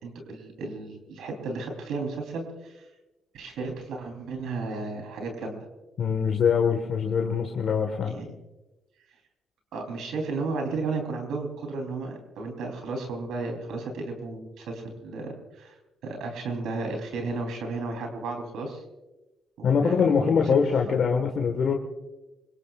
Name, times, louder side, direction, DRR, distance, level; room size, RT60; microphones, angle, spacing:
voice 1, 0.0-2.8 3.3-5.6 8.1-8.3 9.7-15.8 16.0-18.8 19.6-20.4, right 3 dB, 80° right, 3 dB, 3.9 m, -33 dB
voice 2, 6.0-8.1 19.6-21.7, left 6 dB, 60° left, 2 dB, 1.8 m, -23 dB
24.5 x 21.0 x 2.6 m, 1.1 s
cardioid pair, 90°, 0 cm